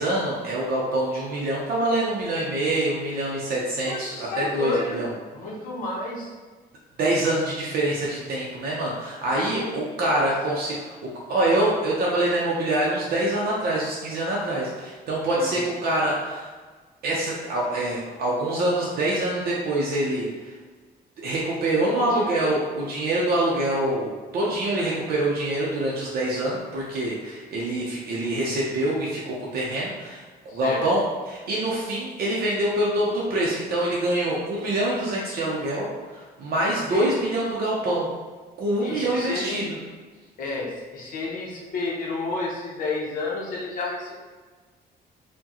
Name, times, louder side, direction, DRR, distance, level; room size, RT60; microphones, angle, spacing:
voice 1, 0.0-5.1 7.0-16.5 17.0-20.5 21.2-38.1 38.6-39.8, right 1 dB, 60° right, -4 dB, 0.6 m, -25 dB
voice 2, 3.8-5.0 5.3-6.3 9.5-10.3 15.3-15.6 21.9-22.3 30.5-30.8 36.9-37.1 38.8-39.6 40.4-44.1, left 3 dB, 55° left, -3 dB, 0.8 m, -31 dB
4.5 x 2.2 x 2.9 m, 1.4 s
cardioid pair, 175°, 17 cm